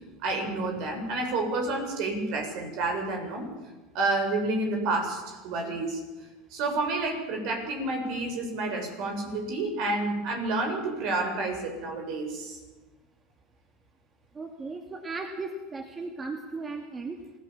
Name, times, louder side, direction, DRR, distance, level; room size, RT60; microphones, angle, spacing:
voice 1, 0.2-3.5 3.9-6.0 6.5-12.6, right 2 dB, 60° right, 4 dB, 7.2 m, -29 dB
voice 2, 14.3-17.2, right 3 dB, 25° right, 5 dB, 2.4 m, -36 dB
26.5 x 17.0 x 7.4 m, 1.2 s
hypercardioid pair, 80°, 0 cm